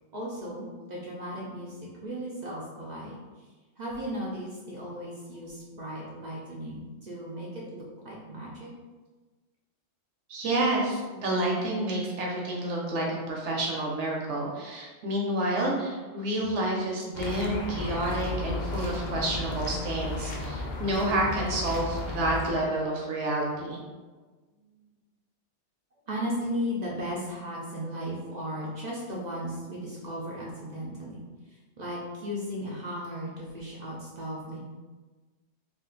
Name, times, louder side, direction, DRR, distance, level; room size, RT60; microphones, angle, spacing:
voice 1, 0.1-3.5 3.8-8.7 26.1-31.2 31.5-34.6, equal, 50° right, -5 dB, 0.5 m, -36 dB
voice 2, 10.3-23.8, right 1 dB, 70° right, -2 dB, 0.9 m, -29 dB
sound 1, 17.1-22.5, left 2 dB, 85° left, 0.4 m, -34 dB
2.5 x 2.4 x 3.7 m, 1.3 s
omnidirectional pair, 1.3 m